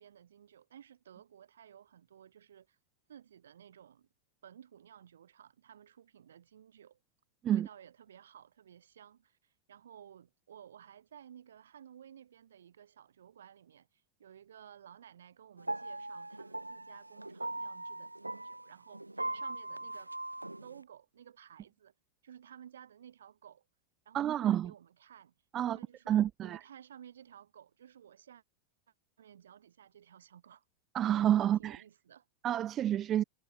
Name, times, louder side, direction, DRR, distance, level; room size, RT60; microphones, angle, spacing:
voice 1, 0.0-2.8 3.1-4.1 4.4-7.0 7.5-19.0 19.3-20.1 20.5-21.9 22.2-23.7 24.0-28.4 29.2-30.6 31.0-31.1 31.4-32.3, right 9 dB, 65° right, 2.9 m, -55 dB
sound 1, 15.6-20.8, right 2 dB, 85° right, 1.1 m, -40 dB
voice 2, 24.1-24.7 25.5-25.8 26.1-26.6 30.9-31.8 32.4-33.2, right 11 dB, 30° right, 0.3 m, -29 dB
figure-of-eight pair, 90°, 0 cm